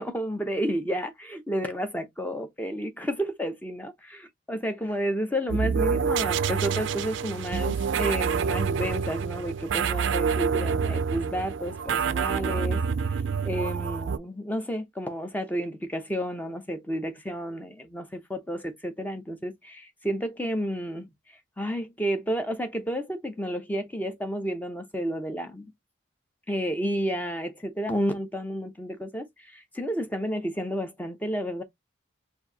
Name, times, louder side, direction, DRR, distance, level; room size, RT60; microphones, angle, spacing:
voice 1, 0.0-3.9 4.5-12.8 13.4-21.1 21.6-25.7 26.5-31.6, equal, 10° left, 0.6 m, -31 dB
sound 1, 5.5-14.2, right 6 dB, 65° right, 0.4 m, -27 dB
4.4 x 2.6 x 2.7 m
head